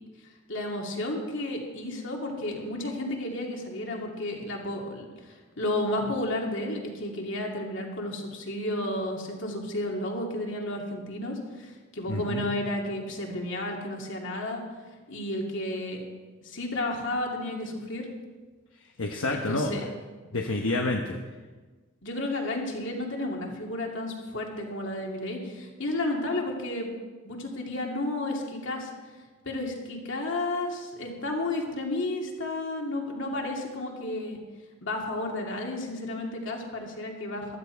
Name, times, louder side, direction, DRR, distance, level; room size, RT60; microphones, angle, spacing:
voice 1, 0.5-5.0 5.6-14.6 15.1-16.0 16.4-18.1 19.3-19.8 22.0-26.9 27.2-28.9 29.5-34.4 34.8-37.6, left 1 dB, 60° left, 0 dB, 2.6 m, -32 dB
voice 2, 12.1-12.4 19.0-19.9 20.3-21.2, left 2 dB, 75° left, 2 dB, 1.1 m, -28 dB
15.5 x 12.5 x 4.6 m, 1.3 s
head